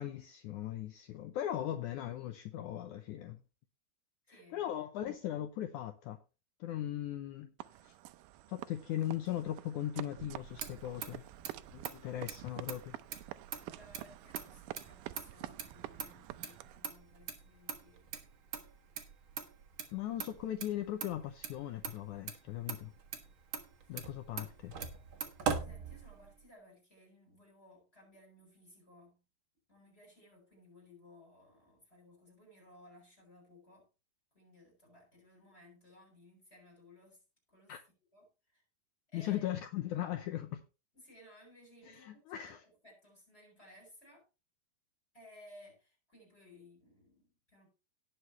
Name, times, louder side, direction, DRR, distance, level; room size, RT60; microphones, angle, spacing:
voice 1, 0.0-3.4 4.5-6.2 6.6-7.5 7.8-8.0 8.5-11.2 11.7-13.0 19.9-22.9 23.9-24.7 37.7-37.8 39.1-40.6 41.9-42.6, left 12 dB, 80° left, 1.8 m, -38 dB
voice 2, 4.3-4.7 13.7-18.1 23.7-24.0 25.6-29.2 29.7-33.9 34.3-37.8 38.1-38.6 39.1-39.5 40.9-44.2 45.1-47.7, left 1 dB, 15° left, 7.0 m, -60 dB
sound 1, 7.6-16.9, right 15 dB, 80° right, 1.9 m, -48 dB
Motor vehicle (road), 10.2-26.4, right 6 dB, 55° right, 1.4 m, -43 dB
18.0 x 6.8 x 3.1 m
omnidirectional pair, 4.3 m